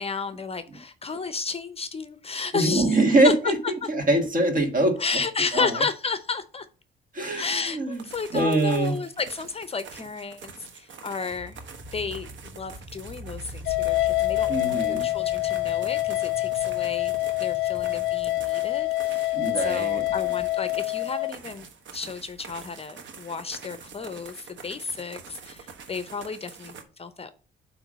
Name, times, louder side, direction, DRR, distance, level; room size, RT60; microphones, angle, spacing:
voice 1, 0.0-3.0 3.2-3.3 3.6-3.7 5.0-6.7 7.4-11.6 11.9-17.1 17.4-21.7 21.9-27.3, left 4 dB, 30° left, 0.6 m, -32 dB
voice 2, 2.5-3.5 3.9-5.0 5.5-5.7 7.1-8.0 8.3-9.0 14.5-15.1 19.3-20.0, right 2 dB, 45° right, 1.7 m, -23 dB
sound 1, 7.9-26.8, right 5 dB, 70° right, 1.2 m, -46 dB
sound 2, 11.3-20.2, right 1 dB, 20° right, 3.6 m, -44 dB
sound 3, 13.7-21.3, left 18 dB, 80° left, 0.4 m, -26 dB
8.0 x 3.1 x 6.2 m
cardioid pair, 90°, 20 cm